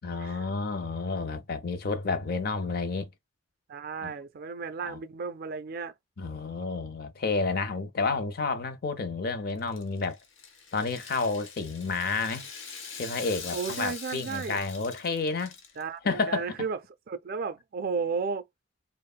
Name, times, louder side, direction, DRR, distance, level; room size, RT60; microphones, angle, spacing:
voice 1, 0.0-3.1 4.0-4.1 4.8-5.0 6.2-10.2 10.7-12.5 13.0-15.5 16.0-16.6, left 4 dB, 50° left, 0.5 m, -30 dB
voice 2, 3.7-5.9 13.5-14.6 15.8-16.8 17.1-18.4, right 5 dB, 50° right, 0.4 m, -33 dB
Rattle (instrument), 9.6-15.8, left 6 dB, 85° left, 0.7 m, -43 dB
3.0 x 2.0 x 2.2 m
head